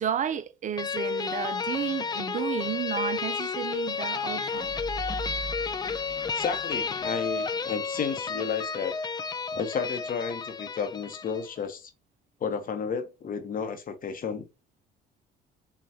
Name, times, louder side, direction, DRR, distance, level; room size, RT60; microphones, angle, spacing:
voice 1, 0.0-4.8, right 9 dB, 40° right, 0.5 m, -32 dB
sound 1, 0.8-11.5, left 5 dB, 20° left, 0.4 m, -32 dB
sound 2, 4.4-7.1, right 4 dB, 20° right, 0.9 m, -40 dB
voice 2, 6.4-9.0 9.5-11.9 12.4-14.5, left 6 dB, 45° left, 0.9 m, -32 dB
5.7 x 2.3 x 2.8 m
cardioid pair, 95°, 20 cm